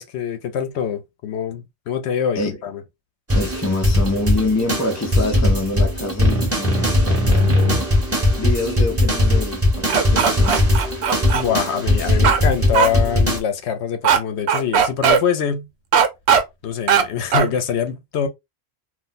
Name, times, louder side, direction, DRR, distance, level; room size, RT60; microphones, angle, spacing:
voice 1, 0.0-2.8 11.3-15.7 16.6-18.3, left 7 dB, 85° left, 0.9 m, -24 dB
voice 2, 3.3-10.7, left 2 dB, 20° left, 0.5 m, -26 dB
sound 1, 3.3-13.4, left 1 dB, 15° right, 0.9 m, -19 dB
sound 2, 9.9-11.4 12.2-12.4 12.7-12.9 14.0-14.2 14.5-15.2 15.9-16.4 16.9-17.0 17.3-17.5, right 7 dB, 80° right, 0.9 m, -17 dB
2.4 x 2.1 x 3.9 m
omnidirectional pair, 1.1 m